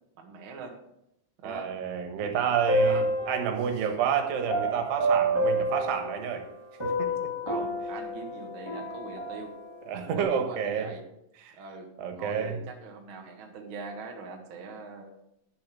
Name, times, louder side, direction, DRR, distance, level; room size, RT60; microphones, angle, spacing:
voice 1, 0.2-0.8 1.4-1.7 2.8-3.1 7.4-9.6 10.1-11.1 11.5-15.1, right 4 dB, 90° right, 2 dB, 1.1 m, -42 dB
voice 2, 1.4-6.5 6.8-7.3 9.9-10.9 11.4-11.5 12.0-12.6, right 7 dB, 70° right, 5 dB, 3.3 m, -29 dB
sound 1, 2.4-3.9 4.5-6.5 6.8-9.8, right 1 dB, 20° left, 0.7 m, -29 dB
11.0 x 7.2 x 6.2 m, 0.80 s
omnidirectional pair, 5.2 m